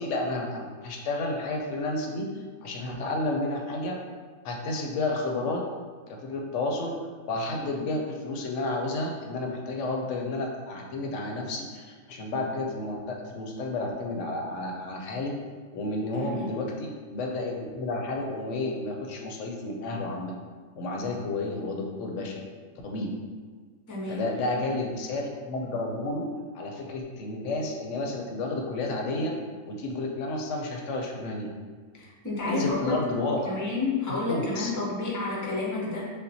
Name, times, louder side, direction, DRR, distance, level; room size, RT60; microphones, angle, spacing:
voice 1, 0.0-2.3 2.6-4.0 4.4-5.6 6.1-7.0 7.3-15.4 15.7-20.3 20.8-22.4 22.8-23.1 24.1-29.4 29.7-31.5 32.5-33.5 34.1-34.7, left 2 dB, 70° left, 1 dB, 0.8 m, -31 dB
voice 2, 16.1-16.5 23.9-24.2 31.9-33.0 33.5-36.0, left 3 dB, 25° left, -5 dB, 0.3 m, -30 dB
5.5 x 2.0 x 2.7 m, 1.5 s
omnidirectional pair, 1.5 m